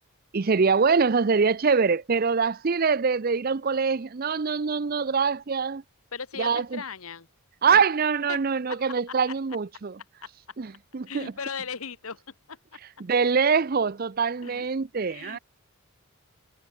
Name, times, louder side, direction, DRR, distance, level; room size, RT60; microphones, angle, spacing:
voice 1, 0.3-5.8 6.4-6.8 7.6-10.0 10.6-11.3 13.0-15.4, right 5 dB, 40° right, 0.5 m, -24 dB
voice 2, 6.1-7.3 8.3-8.4 8.7-9.2 10.2-10.3 11.1-12.2 12.5-12.8 14.4-14.7 15.1-15.4, left 6 dB, 75° left, 1.4 m, -37 dB
head